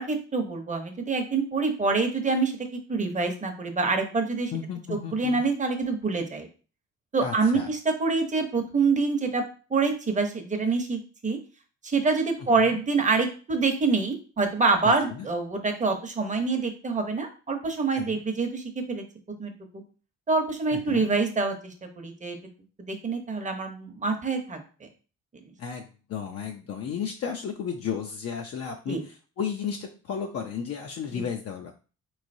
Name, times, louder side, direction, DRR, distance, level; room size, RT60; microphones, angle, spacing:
voice 1, 0.0-4.5 4.9-6.5 7.1-9.4 9.7-11.4 11.8-19.0 19.4-19.5 20.3-22.4 22.9-24.9 28.9-29.0 31.1-31.2, right 4 dB, 25° right, 5 dB, 0.8 m, -26 dB
voice 2, 4.5-5.4 7.2-7.7 12.6-12.8 14.8-15.3 17.9-18.2 20.7-21.1 25.6-31.7, left 7 dB, 55° left, 3 dB, 0.5 m, -34 dB
3.7 x 3.1 x 2.6 m, 0.36 s
cardioid pair, 90°, 30 cm